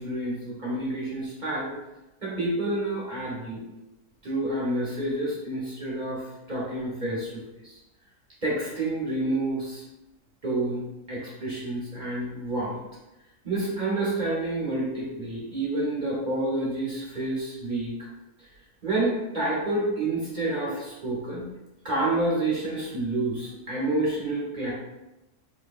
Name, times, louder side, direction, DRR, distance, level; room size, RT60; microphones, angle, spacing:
voice 1, 0.0-1.7 2.2-3.6 4.2-7.8 8.4-9.8 10.4-10.8 11.1-12.8 13.4-17.9 18.8-21.5 21.8-24.7, right 2 dB, 30° right, -5 dB, 1.3 m, -29 dB
5.2 x 2.8 x 2.5 m, 0.97 s
omnidirectional pair, 1.6 m